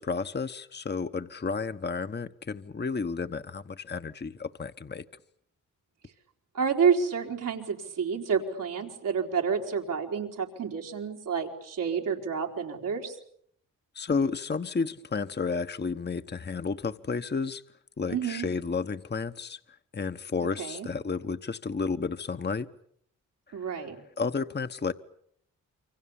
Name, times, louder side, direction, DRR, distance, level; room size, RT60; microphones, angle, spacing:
voice 1, 0.0-5.0 13.9-17.6 18.0-22.7 23.5-23.9 24.2-24.9, left 4 dB, 35° left, 9 dB, 1.0 m, -32 dB
voice 2, 6.5-13.1 18.1-18.5 20.6-20.9 23.5-24.0, right 6 dB, 85° right, 1 dB, 4.0 m, -29 dB
28.0 x 24.5 x 7.2 m, 0.67 s
cardioid pair, 50°, 32 cm